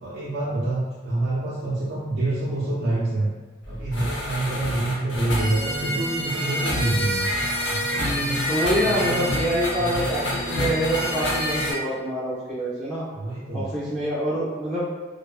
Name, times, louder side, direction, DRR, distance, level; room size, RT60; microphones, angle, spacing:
voice 1, 0.0-3.3 3.7-7.3 7.7-8.4 8.8-9.2 9.8-10.1 13.1-13.7, right 2 dB, 65° right, -8 dB, 0.4 m, -27 dB
sound 1, 3.6-11.7, equal, 75° left, 0.7 m, -27 dB
voice 2, 8.0-13.0 13.5-14.9, equal, 5° right, -13 dB, 0.5 m, -26 dB
2.5 x 2.1 x 2.4 m, 1.3 s
head